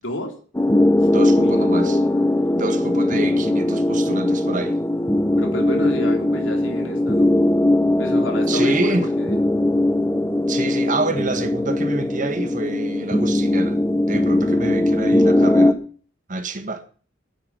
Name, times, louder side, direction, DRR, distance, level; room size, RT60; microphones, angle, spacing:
voice 1, 0.0-0.3 1.3-2.2 5.4-7.3 8.0-9.4, equal, 80° left, 3.8 m, -30 dB
sound 1, 0.5-15.7, left 1 dB, 15° left, 0.9 m, -19 dB
voice 2, 1.1-2.0 2.5-4.8 8.5-9.1 10.5-13.8 14.1-15.8 16.3-16.8, right 2 dB, 40° right, 1.7 m, -27 dB
9.7 x 9.5 x 9.8 m
head